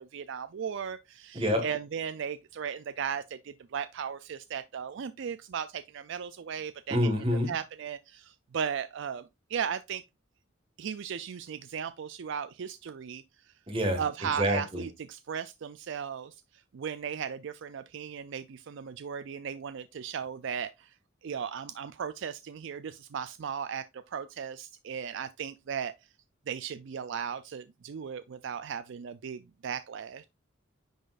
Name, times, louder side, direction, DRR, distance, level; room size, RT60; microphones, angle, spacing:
voice 1, 0.0-7.1 7.5-9.2 9.5-10.0 10.8-13.2 14.0-16.3 16.7-20.9 21.2-25.9 26.5-30.3, right 7 dB, 60° right, 0.4 m, -36 dB
voice 2, 6.9-7.5 13.7-14.0 14.4-14.8, equal, 25° right, 1.7 m, -27 dB
10.0 x 4.0 x 2.5 m
head